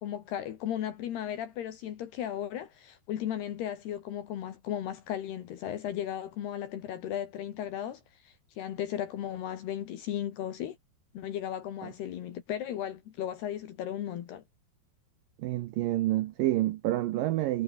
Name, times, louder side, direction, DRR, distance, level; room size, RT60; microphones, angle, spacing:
voice 1, 0.0-10.8 11.1-14.4, left 10 dB, 70° left, 3.8 m, -36 dB
voice 2, 15.4-17.6, right 15 dB, 80° right, 2.0 m, -28 dB
omnidirectional pair, 4.9 m